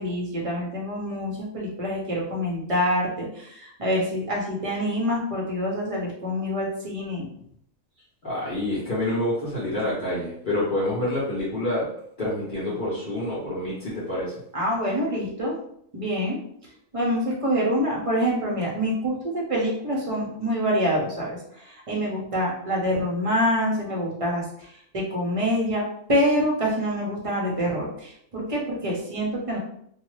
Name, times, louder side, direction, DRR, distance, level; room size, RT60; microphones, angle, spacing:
voice 1, 0.0-7.3 14.5-15.5 15.9-16.4 16.9-29.6, equal, 30° right, -3 dB, 0.7 m, -26 dB
voice 2, 8.2-11.8 12.2-14.3, left 1 dB, 40° left, -9 dB, 0.9 m, -27 dB
2.7 x 2.3 x 3.1 m, 0.69 s
omnidirectional pair, 1.4 m